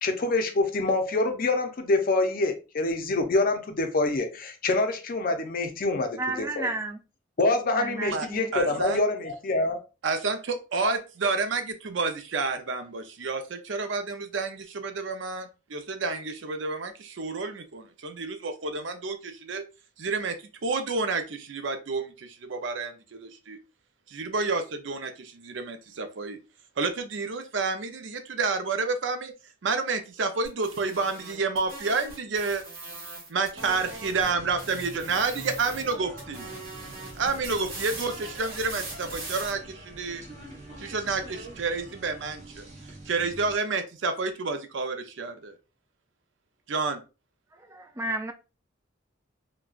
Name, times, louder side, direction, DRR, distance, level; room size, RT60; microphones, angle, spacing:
voice 1, 0.0-6.7 7.4-9.8, left 2 dB, 45° left, 0.5 m, -26 dB
voice 2, 6.2-7.0 7.7-8.8 47.5-48.3, right 2 dB, 15° right, 0.3 m, -33 dB
voice 3, 8.5-9.0 10.0-19.6 20.0-23.6 24.1-26.4 26.8-29.3 29.6-32.6 33.3-36.5 37.2-40.2 40.8-42.7 43.1-45.6 46.7-47.0, right 4 dB, 70° right, 0.5 m, -30 dB
sound 1, 30.4-34.3 34.6-35.9 36.2-39.5, right 2 dB, 50° right, 1.8 m, -41 dB
sound 2, 33.6-43.5, right 1 dB, 35° right, 1.0 m, -45 dB
3.9 x 2.2 x 2.4 m
head